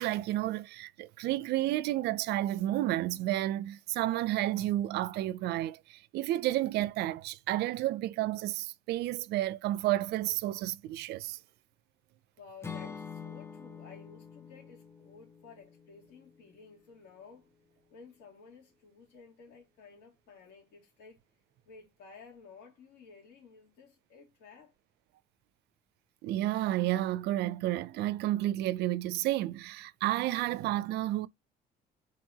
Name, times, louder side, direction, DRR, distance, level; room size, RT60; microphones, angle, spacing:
voice 1, 0.0-11.4 26.2-31.3, right 15 dB, 80° right, 0.5 m, -31 dB
voice 2, 12.4-17.5 17.9-21.2 21.7-24.7, left 5 dB, 85° left, 2.9 m, -54 dB
Acoustic guitar / Strum, 12.6-16.7, left 6 dB, 15° left, 0.8 m, -46 dB
4.5 x 4.1 x 2.8 m
cardioid pair, 110°, 17 cm